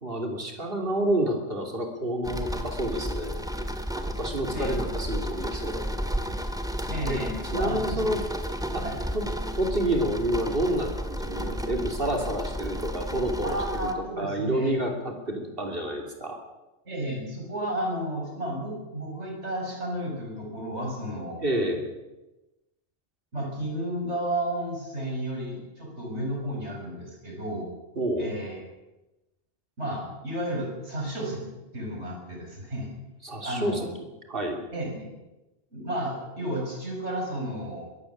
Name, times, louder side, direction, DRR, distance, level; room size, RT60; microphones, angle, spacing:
voice 1, 0.0-3.4 4.0-6.1 7.1-7.2 7.5-8.2 8.7-8.8 9.1-9.2 9.5-13.9 14.2-16.4 21.4-21.8 28.0-28.3 33.2-33.8 34.3-34.6, right 1 dB, 55° right, 3 dB, 3.2 m, -29 dB
sound 1, 2.2-13.9, equal, 5° right, 1.9 m, -32 dB
voice 2, 4.5-4.9 6.9-8.1 8.8-9.0 13.4-14.8 16.8-21.4 23.3-27.7 28.2-28.6 29.8-32.9 33.4-33.9 34.7-35.1 35.7-37.9, right 1 dB, 80° right, 0 dB, 6.6 m, -32 dB
22.0 x 14.5 x 8.6 m, 1.0 s
omnidirectional pair, 1.1 m